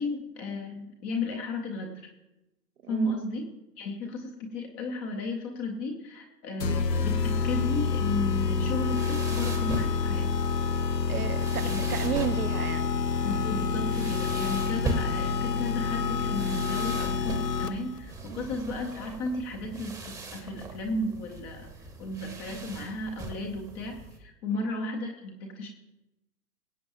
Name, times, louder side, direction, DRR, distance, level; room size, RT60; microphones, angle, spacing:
voice 1, 0.0-2.0 2.9-3.5 3.8-10.4 11.6-11.8 13.2-21.7 22.0-25.7, left 2 dB, 10° left, 2 dB, 0.5 m, -34 dB
voice 2, 2.8-3.3 11.1-13.0 18.3-18.5 24.5-24.8, right 8 dB, 60° right, 10 dB, 0.9 m, -34 dB
sound 1, 6.6-18.0, left 5 dB, 75° left, 0.8 m, -28 dB
sound 2, 8.3-24.2, right 3 dB, 5° right, 0.9 m, -40 dB
22.0 x 8.4 x 2.9 m, 0.95 s
figure-of-eight pair, 115°, 49 cm